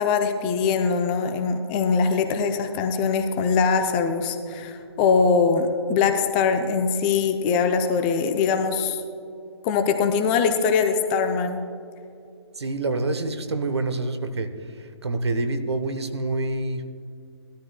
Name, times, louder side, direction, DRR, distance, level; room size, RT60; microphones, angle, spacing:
voice 1, 0.0-9.0 9.6-11.6, left 5 dB, 20° left, 7 dB, 0.5 m, -22 dB
voice 2, 12.5-16.8, right 2 dB, 65° right, 9 dB, 1.0 m, -27 dB
17.5 x 13.0 x 2.2 m, 2.5 s
figure-of-eight pair, 135°, 15 cm